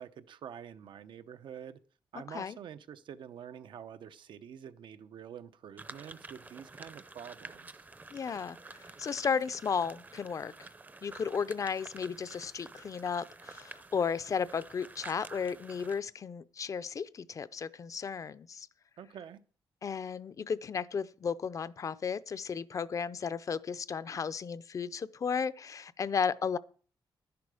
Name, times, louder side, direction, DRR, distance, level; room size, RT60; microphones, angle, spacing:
voice 1, 0.0-1.8 2.1-7.9 19.0-19.4, right 8 dB, 85° right, 0.7 m, -47 dB
sound 1, 5.8-16.0, right 3 dB, 20° right, 0.6 m, -50 dB
voice 2, 8.1-10.7 11.0-18.7 19.8-26.6, left 6 dB, 45° left, 0.5 m, -34 dB
11.5 x 10.5 x 4.9 m
wide cardioid pair, 145°, 8 cm